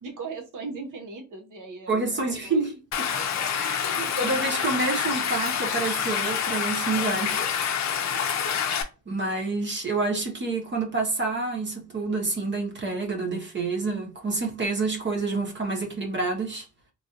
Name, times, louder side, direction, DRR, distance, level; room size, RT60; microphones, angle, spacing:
voice 1, 0.0-2.6 3.9-4.4, right 4 dB, 85° right, 0.9 m, -39 dB
voice 2, 1.9-3.2 3.6-7.4 8.1-8.4 9.1-16.6, right 3 dB, 35° right, 0.7 m, -28 dB
Stream, 2.9-8.8, left 8 dB, 60° left, 0.5 m, -27 dB
3.1 x 2.5 x 2.7 m
wide cardioid pair, 180°, 31 cm